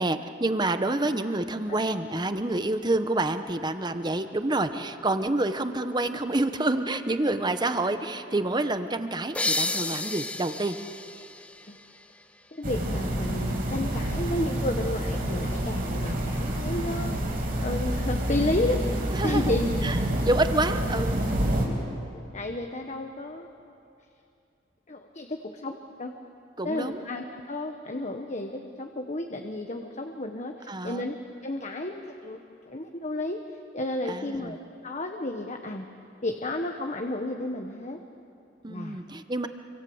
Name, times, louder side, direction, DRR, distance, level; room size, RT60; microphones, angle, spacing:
voice 1, 0.0-10.8 19.1-19.5 19.8-21.2 26.6-27.0 30.7-31.1 34.1-34.6 38.6-39.5, right 2 dB, 25° right, 9 dB, 1.1 m, -28 dB
sound 1, 9.3-12.8, left 2 dB, 5° left, 0.9 m, -32 dB
voice 2, 12.5-18.8 19.2-20.1 22.1-23.5 24.9-26.1 26.6-31.1 31.4-33.4 33.7-34.6 34.8-35.9 36.2-38.0 38.7-39.0, left 1 dB, 40° left, 4 dB, 1.2 m, -32 dB
sound 2, 12.6-21.7, right 1 dB, 50° right, 5.1 m, -28 dB
27.0 x 25.5 x 8.0 m, 2.7 s
head